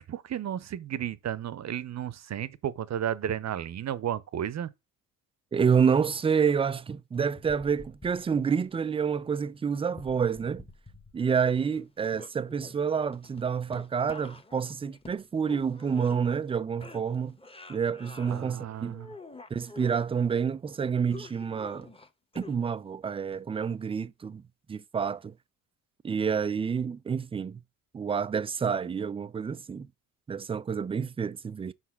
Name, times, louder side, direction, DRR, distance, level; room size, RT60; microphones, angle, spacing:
voice 1, 0.0-4.7 18.3-19.1, right 10 dB, 40° right, 0.8 m, -33 dB
voice 2, 5.5-10.6 11.1-17.4 17.7-18.9 19.5-21.9 22.3-24.4 24.7-25.3 26.0-27.6 27.9-29.9 30.3-31.7, right 6 dB, 15° right, 0.3 m, -28 dB
sound 1, 7.2-8.7 9.9-11.3 11.6-16.5 16.8-18.5 18.9-20.0 21.1-22.9 23.3-23.4, left 3 dB, 15° left, 1.2 m, -48 dB
5.6 x 4.9 x 5.7 m
hypercardioid pair, 55°, 43 cm